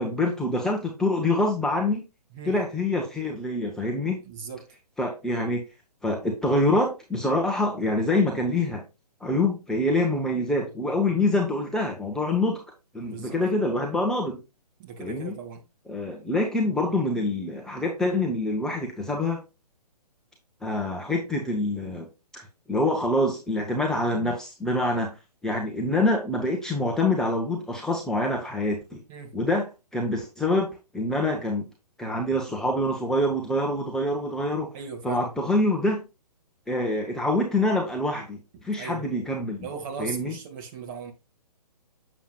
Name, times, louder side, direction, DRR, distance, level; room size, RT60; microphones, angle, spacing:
voice 1, 0.0-2.0 2.4-4.2 5.0-5.6 6.0-8.8 9.2-12.6 12.9-14.4 15.0-15.4 15.9-19.4 20.6-22.1 22.3-25.1 25.4-29.0 29.3-31.7 32.0-34.7 35.0-36.0 36.7-39.7 40.0-40.3, left 1 dB, 5° left, 0.8 m, -26 dB
voice 2, 4.2-4.7 13.0-13.4 14.8-15.6 29.1-29.3 34.7-35.3 38.8-39.1 39.6-41.1, right 6 dB, 30° right, 2.1 m, -37 dB
7.4 x 7.1 x 2.3 m
figure-of-eight pair, 135°, 21 cm